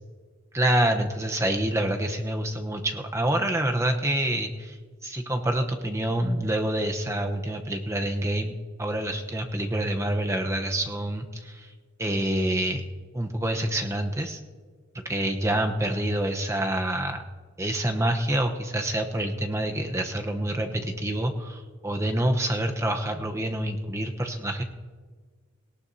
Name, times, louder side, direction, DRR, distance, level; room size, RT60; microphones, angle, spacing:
voice 1, 0.5-4.8 5.0-8.5 8.8-11.7 12.0-12.8 13.1-14.4 15.0-17.2 17.6-24.6, right 1 dB, 15° right, 4 dB, 0.9 m, -27 dB
18.5 x 18.0 x 2.8 m, 1.5 s
head